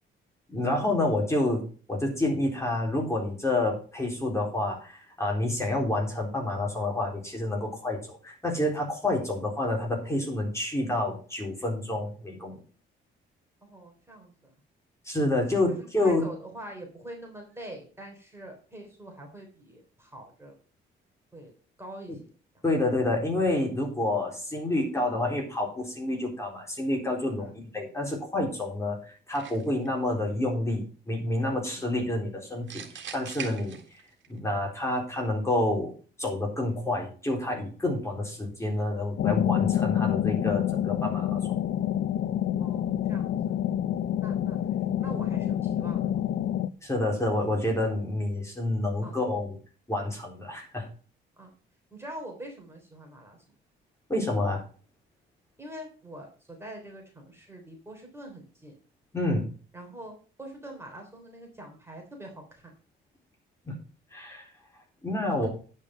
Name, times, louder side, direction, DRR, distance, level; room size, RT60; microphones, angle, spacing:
voice 1, 0.5-12.6 15.1-16.2 22.6-33.8 34.3-35.9 36.2-41.6 46.8-49.6 49.9-50.9 54.1-54.6 59.1-59.5 63.7-63.8 64.1-64.5 65.0-65.5, left 1 dB, 15° left, 0 dB, 3.9 m, -28 dB
voice 2, 13.6-14.5 15.7-20.6 21.3-21.5 21.8-22.2 22.5-22.6 27.4-27.6 30.0-30.1 31.7-31.9 42.6-43.5 44.2-46.1 49.0-49.1 51.4-51.5 51.9-53.4 55.6-58.8 59.7-62.7 65.3-65.4, right 1 dB, 10° right, 1 dB, 3.3 m, -44 dB
sound 1, 29.3-29.9 32.7-34.3, right 8 dB, 70° right, 2.0 m, -41 dB
sound 2, 39.2-46.7, left 10 dB, 65° left, 0.5 m, -27 dB
9.8 x 5.5 x 6.1 m, 0.39 s
cardioid pair, 90°, 20 cm